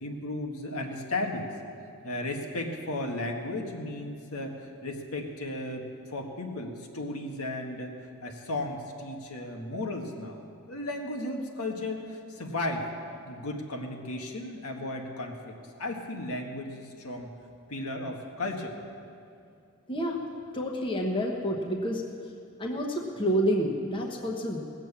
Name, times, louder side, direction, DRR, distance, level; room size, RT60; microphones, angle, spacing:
voice 1, 0.0-1.5 2.0-8.0 8.2-12.9 13.2-17.3 17.7-18.7, left 2 dB, 85° left, 2 dB, 1.5 m, -35 dB
voice 2, 19.9-20.2 20.5-22.0 22.6-24.6, equal, 20° left, 0 dB, 1.1 m, -28 dB
19.0 x 7.5 x 7.2 m, 2.4 s
head